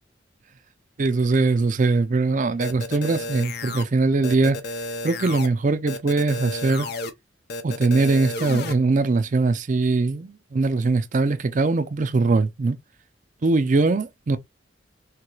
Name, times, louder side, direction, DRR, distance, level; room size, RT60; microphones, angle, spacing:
voice 1, 1.0-4.6 5.0-6.9 7.6-12.8 13.4-14.4, right 3 dB, 45° right, 0.4 m, -21 dB
sound 1, 2.6-3.8 4.2-5.5 5.9-7.1 7.5-8.7, left 2 dB, 60° left, 0.6 m, -32 dB
3.2 x 3.1 x 2.3 m
head